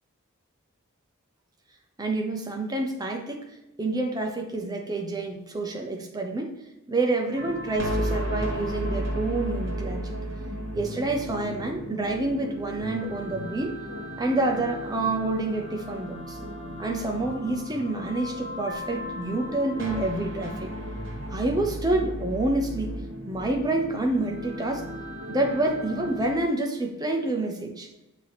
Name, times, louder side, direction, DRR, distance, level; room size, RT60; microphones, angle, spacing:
voice 1, 2.0-3.5 3.8-6.5 6.9-10.1 10.7-13.8 14.2-16.4 16.8-20.7 21.3-24.9 25.3-27.9, right 2 dB, 20° right, 2 dB, 0.7 m, -28 dB
sound 1, 7.4-26.4, equal, 60° right, 1.2 m, -34 dB
6.8 x 2.9 x 5.8 m, 0.92 s
head